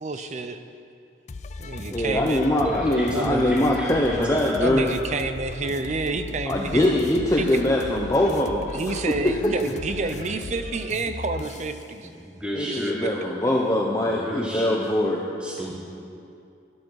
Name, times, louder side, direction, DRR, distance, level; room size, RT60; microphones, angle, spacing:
voice 1, 0.0-0.6 1.6-2.4 3.1-3.5 4.6-7.0 7.4-7.6 8.7-12.1 12.7-12.8, right 3 dB, 40° right, 9 dB, 0.6 m, -29 dB
sound 1, 1.3-11.9, left 3 dB, 40° left, 0.4 m, -37 dB
voice 2, 1.9-4.9 6.5-9.5 12.5-15.3, left 1 dB, 15° left, -2 dB, 0.7 m, -23 dB
voice 3, 2.6-4.8 12.0-13.0 14.0-14.9 15.4-15.8, equal, 5° right, -4 dB, 1.3 m, -32 dB
12.0 x 11.0 x 4.7 m, 2.5 s
head